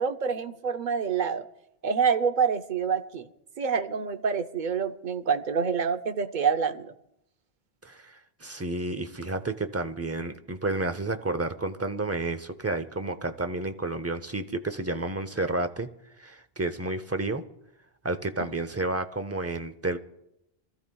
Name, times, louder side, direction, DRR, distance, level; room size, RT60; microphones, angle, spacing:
voice 1, 0.0-1.4 1.8-3.3 3.6-6.9 18.4-18.5, right 6 dB, 55° right, 9 dB, 0.8 m, -27 dB
voice 2, 7.8-15.9 16.2-17.4 18.0-20.0, right 2 dB, 20° right, 10 dB, 0.6 m, -31 dB
26.5 x 14.0 x 2.3 m, 0.82 s
omnidirectional pair, 1.0 m